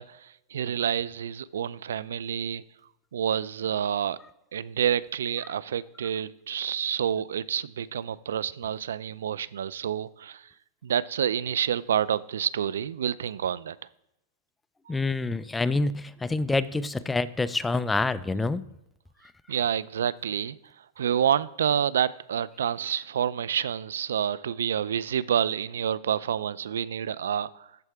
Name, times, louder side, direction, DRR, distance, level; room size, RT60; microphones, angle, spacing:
voice 1, 0.0-2.6 3.1-4.2 4.5-10.5 10.8-13.8 14.9-15.0 19.5-20.6 21.0-27.7, right 9 dB, 90° right, 19 dB, 0.3 m, -28 dB
voice 2, 14.9-18.7, left 3 dB, 10° left, 15 dB, 0.3 m, -27 dB
13.5 x 4.6 x 3.4 m, 0.87 s
hypercardioid pair, 140°, 0 cm